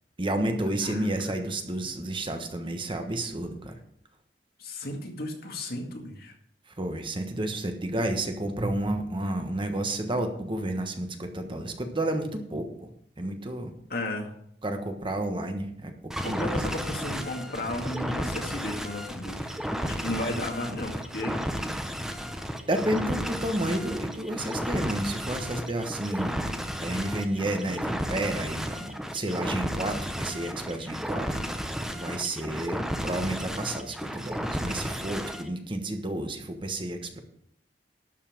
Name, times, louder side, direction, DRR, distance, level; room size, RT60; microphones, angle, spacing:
voice 1, 0.2-3.8 6.8-12.9 13.2-13.7 14.6-15.9 16.2-16.6 22.7-31.4 31.9-37.2, right 1 dB, 30° right, 6 dB, 1.3 m, -31 dB
voice 2, 0.8-1.3 4.6-6.3 13.9-14.3 16.2-21.7, left 1 dB, 60° left, 2 dB, 2.2 m, -34 dB
sound 1, 16.1-35.5, equal, 5° right, 0.9 m, -33 dB
12.0 x 5.6 x 7.4 m, 0.68 s
head